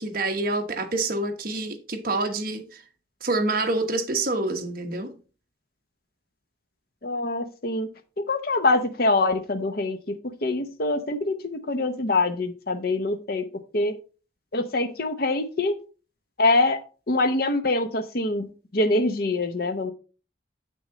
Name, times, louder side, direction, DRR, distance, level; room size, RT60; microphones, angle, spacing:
voice 1, 0.0-2.6 3.2-5.1, right 2 dB, 50° right, 1.2 m, -27 dB
voice 2, 7.0-7.9 8.3-10.0 10.4-13.4 13.7-14.0 14.5-15.7 16.4-16.8 17.1-19.9, left 2 dB, 50° left, 0.8 m, -24 dB
7.9 x 6.4 x 3.9 m
head